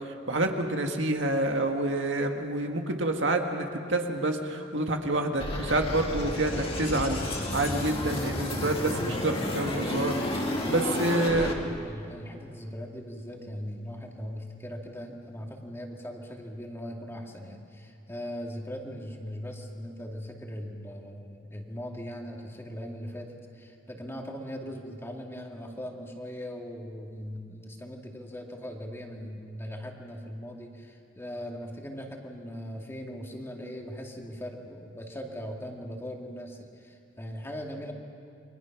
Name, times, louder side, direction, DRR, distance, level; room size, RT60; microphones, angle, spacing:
voice 1, 0.3-11.5, right 2 dB, 70° right, 3 dB, 1.9 m, -28 dB
sound 1, 5.4-11.5, left 1 dB, 30° left, 2.6 m, -31 dB
voice 2, 8.3-8.8 10.8-37.9, equal, 15° left, 1 dB, 2.3 m, -40 dB
29.5 x 24.0 x 5.9 m, 2.4 s
head